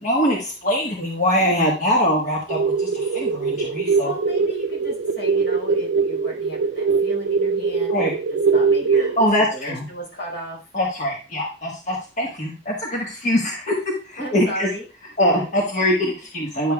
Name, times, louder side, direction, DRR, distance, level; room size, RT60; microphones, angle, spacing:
voice 1, 0.0-4.1 7.9-8.1 9.2-9.8 10.7-13.8 14.0-14.7 15.2-16.7, equal, 45° left, -2 dB, 1.3 m, -22 dB
sound 1, 2.5-9.3, right 5 dB, 70° right, 0.4 m, -22 dB
voice 2, 4.0-10.6 14.2-14.9 15.8-16.1 16.4-16.5, equal, 75° left, -2 dB, 4.5 m, -35 dB
10.0 x 6.7 x 2.3 m, 0.34 s
head